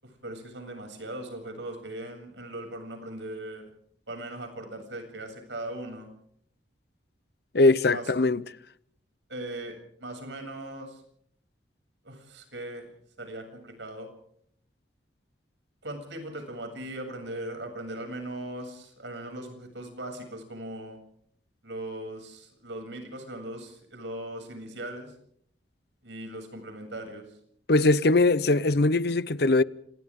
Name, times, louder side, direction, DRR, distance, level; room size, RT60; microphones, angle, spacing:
voice 1, 0.0-3.6 4.1-6.1 7.9-8.1 9.3-11.0 12.0-12.9 13.2-14.1 15.8-21.0 21.6-25.1 26.0-27.3, right 1 dB, 75° right, 7.6 m, -39 dB
voice 2, 7.5-8.4 27.7-29.6, left 2 dB, 55° left, 0.8 m, -21 dB
28.5 x 27.5 x 3.8 m
head